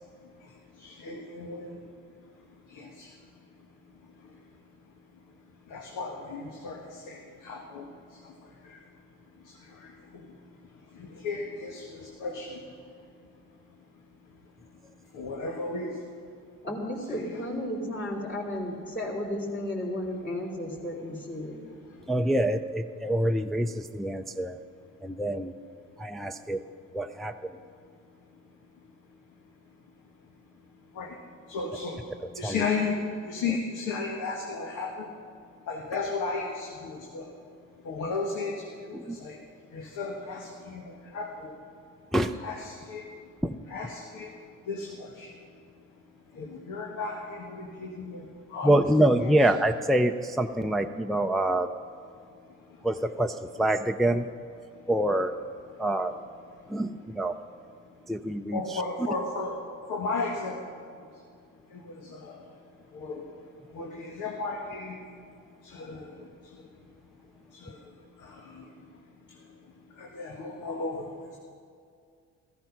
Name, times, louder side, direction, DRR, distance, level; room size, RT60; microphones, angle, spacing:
voice 1, 0.8-1.8 2.7-3.1 5.7-7.9 8.2-8.3 8.6-8.8 9.4-10.3 10.9-12.6 15.1-16.0 17.0-17.4 30.9-31.1 31.5-32.0 32.4-32.9 33.2-35.1 35.7-37.3 37.8-39.4 39.7-41.5 42.4-43.0 43.7-44.3 44.7-45.3 46.3-48.8 49.2-49.4 58.5-59.6 59.9-60.8 61.7-62.4 62.9-63.2 63.7-65.0 65.6-66.3 67.5-67.8 68.2-68.6 70.0-71.1, left 4 dB, 85° left, 0 dB, 1.7 m, -35 dB
voice 2, 16.6-21.6, left 1 dB, 40° left, -4 dB, 3.4 m, -33 dB
voice 3, 22.1-24.6 25.0-25.6 26.0-26.6 26.9-27.6 32.2-32.7 33.5-33.6 38.9-39.2 42.1-42.4 43.4-43.5 48.6-51.7 52.8-54.3 54.9-55.4 55.8-56.2 56.7-57.4 58.1-58.8, right 1 dB, ahead, 5 dB, 0.5 m, -26 dB
15.0 x 14.0 x 5.9 m, 2.3 s
cardioid pair, 90°, 30 cm